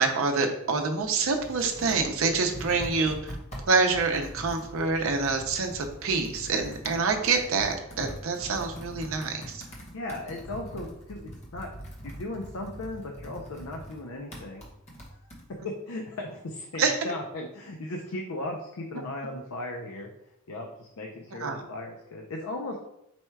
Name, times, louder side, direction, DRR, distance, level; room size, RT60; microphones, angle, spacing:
voice 1, 0.0-3.3 3.7-9.6 16.8-17.0 21.4-21.6, right 4 dB, 70° right, 4 dB, 0.6 m, -26 dB
Computer keyboard, 0.8-15.4, equal, 30° left, 0.9 m, -43 dB
voice 2, 9.9-11.7 12.0-14.6 15.6-20.1 20.5-22.8, left 2 dB, 75° left, 1 dB, 0.5 m, -37 dB
4.2 x 2.2 x 4.5 m, 0.81 s
head